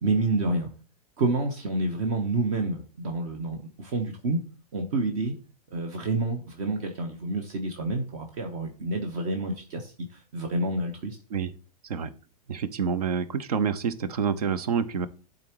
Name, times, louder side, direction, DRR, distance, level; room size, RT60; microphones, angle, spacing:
voice 1, 0.0-0.7 1.2-4.4 4.7-5.3 5.7-11.2, right 2 dB, 55° right, 4 dB, 1.2 m, -28 dB
voice 2, 12.5-15.1, right 6 dB, 70° right, 16 dB, 0.7 m, -27 dB
11.5 x 3.9 x 3.0 m, 0.37 s
figure-of-eight pair, 100°, 20 cm